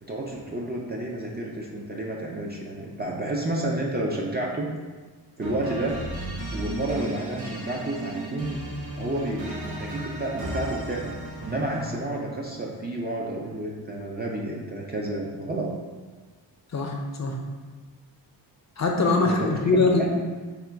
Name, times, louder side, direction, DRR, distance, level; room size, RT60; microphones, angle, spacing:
voice 1, 0.0-4.7 5.4-6.0 6.5-8.6 9.0-15.7 19.2-19.6 20.0-20.1, right 1 dB, 25° right, -2 dB, 0.3 m, -30 dB
sound 1, 5.4-12.1, equal, 45° right, 1.2 m, -35 dB
voice 2, 16.7-17.4 18.8-20.1, left 3 dB, 40° left, 1 dB, 0.5 m, -22 dB
3.6 x 2.2 x 4.4 m, 1.4 s
wide cardioid pair, 130°, 43 cm